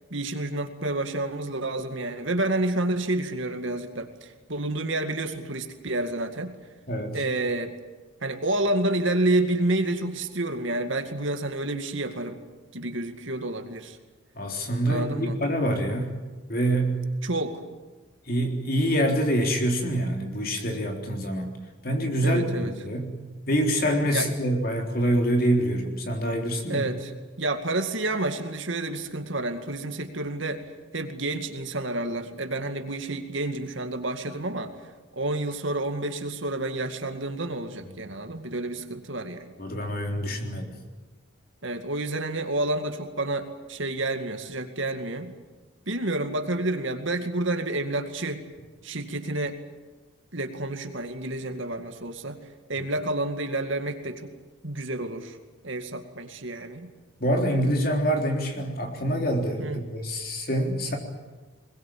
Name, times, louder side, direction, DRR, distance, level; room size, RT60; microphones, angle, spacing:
voice 1, 0.1-6.6 7.1-7.7 8.2-12.4 12.7-14.0 14.9-15.4 17.2-17.6 22.2-22.7 24.1-24.3 26.7-27.1 27.4-30.7 30.9-34.7 35.1-39.5 41.6-45.3 45.9-48.4 48.8-49.6 50.3-52.4 52.7-54.3 54.6-55.4 55.6-56.9 59.6-59.8, right 2 dB, 65° right, 6 dB, 2.2 m, -29 dB
voice 2, 6.9-7.2 14.4-16.1 16.5-17.0 18.3-21.5 21.8-23.1 23.5-26.9 38.0-38.2 39.6-40.7 57.2-61.0, equal, 45° left, 2 dB, 3.8 m, -26 dB
21.5 x 21.5 x 8.8 m, 1.3 s
head